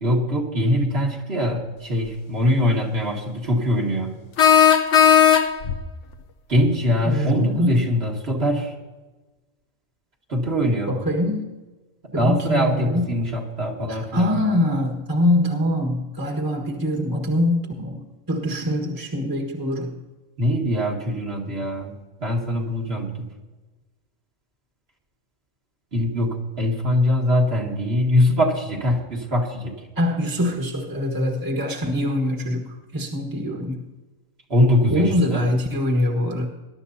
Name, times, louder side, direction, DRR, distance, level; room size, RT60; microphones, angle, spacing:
voice 1, 0.0-4.2 6.5-8.7 10.3-10.9 12.2-14.3 20.4-23.3 25.9-29.7 34.5-35.5, left 1 dB, 50° right, -1 dB, 2.1 m, -22 dB
sound 1, 2.1-2.2 4.4-5.8, left 9 dB, 60° left, 1.1 m, -15 dB
voice 2, 7.0-7.8 10.9-11.5 12.1-13.1 13.9-20.0 29.9-33.8 34.9-36.5, left 1 dB, 15° right, 0 dB, 1.5 m, -24 dB
21.0 x 12.0 x 2.8 m, 1.2 s
omnidirectional pair, 1.4 m